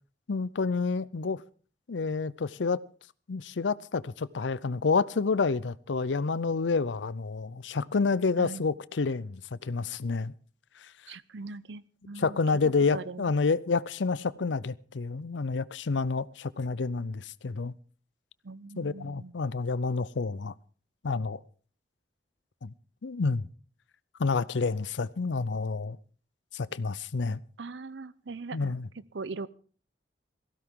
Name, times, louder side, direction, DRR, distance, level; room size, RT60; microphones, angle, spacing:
voice 1, 0.3-1.4 1.9-2.8 3.3-10.3 12.2-17.7 18.8-20.5 21.0-21.4 22.6-22.7 23.0-23.5 24.2-26.0 26.5-27.4 28.5-28.9, left 4 dB, 90° left, 0.6 m, -29 dB
voice 2, 11.1-13.3 18.4-19.3 27.6-28.7 29.1-29.5, right 3 dB, 85° right, 0.7 m, -41 dB
18.5 x 16.0 x 3.8 m
head